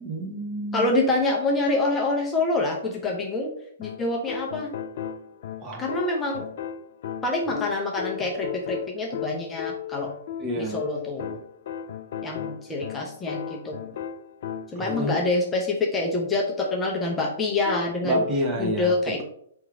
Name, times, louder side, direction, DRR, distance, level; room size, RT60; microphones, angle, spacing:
voice 1, 0.0-0.9 5.6-5.8 10.4-10.9 14.7-15.2 18.0-18.9, equal, 25° right, 0 dB, 1.2 m, -28 dB
voice 2, 0.7-3.5 3.8-4.7 5.8-6.5 7.2-10.1 10.6-11.4 12.2-13.8 14.7-18.2 18.6-19.2, left 2 dB, 15° left, -1 dB, 0.7 m, -26 dB
sound 1, 3.8-15.4 17.7-18.5, left 9 dB, 55° left, 0.4 m, -36 dB
3.6 x 3.1 x 4.8 m, 0.67 s
hypercardioid pair, 120°, 0 cm